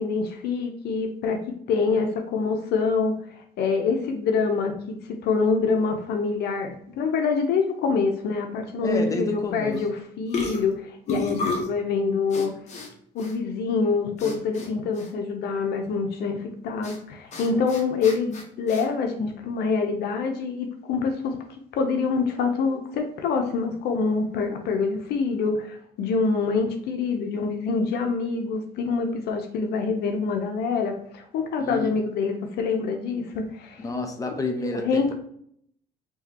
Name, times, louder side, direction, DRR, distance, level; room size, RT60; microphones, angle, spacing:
voice 1, 0.0-1.4 1.7-3.1 3.6-5.0 5.2-12.5 13.1-21.4 21.7-33.8 34.7-35.1, left 4 dB, 75° left, 4 dB, 0.8 m, -25 dB
voice 2, 8.8-9.8 31.6-31.9 33.8-35.1, left 2 dB, 20° left, 2 dB, 1.0 m, -29 dB
sound 1, 9.7-9.9 10.3-11.8 12.3-12.9 13.2-13.3 14.2-14.7 14.9-15.1 16.8-17.0 17.3-18.8, left 3 dB, 45° left, 1.2 m, -32 dB
4.7 x 3.1 x 2.9 m, 0.66 s
cardioid pair, 110°, 17 cm